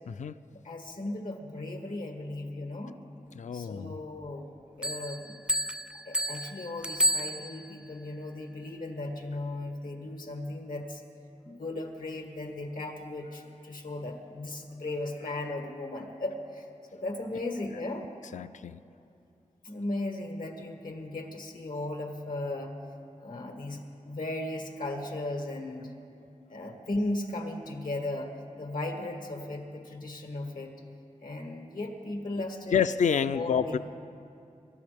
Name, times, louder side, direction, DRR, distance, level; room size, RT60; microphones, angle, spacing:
voice 1, 0.5-3.0 3.5-4.5 4.8-5.4 6.0-11.0 11.4-16.7 16.9-18.1 19.6-22.8 23.2-26.0 26.5-28.3 28.6-30.7 31.2-33.8, left 2 dB, 90° left, 3 dB, 1.8 m, -36 dB
voice 2, 3.4-4.0 18.3-18.8 32.7-33.8, left 7 dB, 65° left, 13 dB, 0.4 m, -28 dB
sound 1, 4.8-7.9, equal, 5° right, 0.3 m, -31 dB
26.5 x 13.0 x 3.5 m, 2.5 s
cardioid pair, 55°, 14 cm